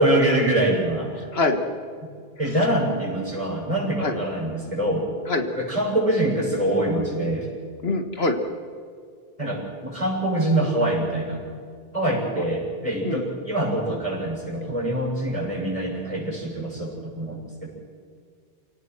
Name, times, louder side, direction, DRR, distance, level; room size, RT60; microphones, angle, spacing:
voice 1, 0.0-1.3 2.4-5.1 5.5-7.5 9.4-11.4 11.9-17.7, right 1 dB, 35° right, -2 dB, 7.3 m, -24 dB
voice 2, 7.8-8.4 12.4-12.5 13.0-13.2, left 3 dB, 80° left, 6 dB, 2.0 m, -24 dB
29.0 x 18.0 x 6.3 m, 2.2 s
omnidirectional pair, 1.0 m